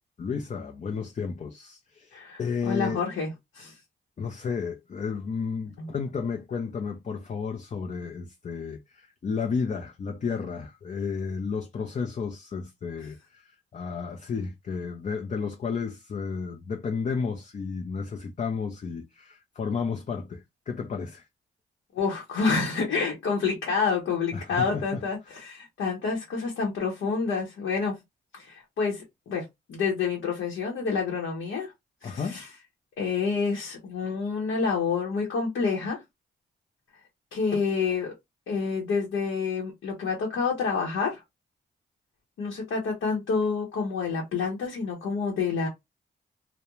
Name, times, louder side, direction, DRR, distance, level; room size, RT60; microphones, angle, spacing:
voice 1, 0.2-3.0 4.2-21.3 24.3-25.0 32.0-32.4, left 5 dB, 40° left, 0.5 m, -32 dB
voice 2, 2.7-3.3 3.5-3.7 5.8-5.9 21.9-28.0 28.3-31.7 32.0-32.5 33.0-36.0 37.3-38.1 38.5-41.2 42.4-45.7, left 5 dB, 80° left, 0.9 m, -28 dB
2.3 x 2.1 x 2.9 m
supercardioid pair, 50°, 20 cm